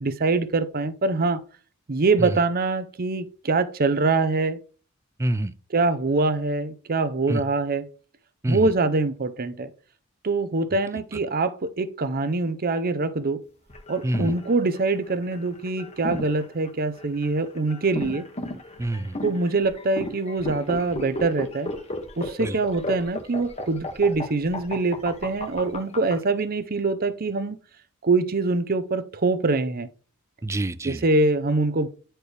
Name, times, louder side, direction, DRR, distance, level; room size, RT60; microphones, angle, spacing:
voice 1, 0.0-1.4 1.9-4.6 5.7-7.8 8.5-9.7 10.2-13.4 13.9-18.3 19.2-21.7 22.2-27.6 28.0-29.9 30.9-31.9, right 3 dB, 45° right, 0.7 m, -24 dB
voice 2, 5.2-5.5 7.3-7.4 8.4-8.7 14.0-14.4 18.8-19.2 22.4-22.6 30.4-31.0, right 1 dB, 15° right, 0.3 m, -27 dB
sound 1, 13.7-26.1, left 1 dB, 30° left, 1.0 m, -34 dB
9.8 x 4.5 x 3.3 m
head